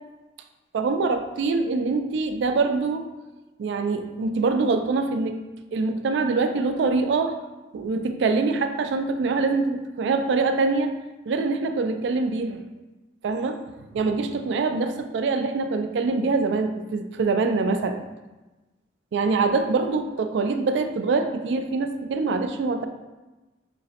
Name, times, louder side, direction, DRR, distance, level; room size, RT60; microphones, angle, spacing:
voice 1, 0.7-3.1 3.6-5.4 5.7-7.4 7.7-10.9 11.3-12.6 13.2-13.6 13.9-18.1 19.1-22.9, right 3 dB, 65° right, 7 dB, 0.3 m, -24 dB
6.1 x 2.1 x 2.8 m, 1.1 s
head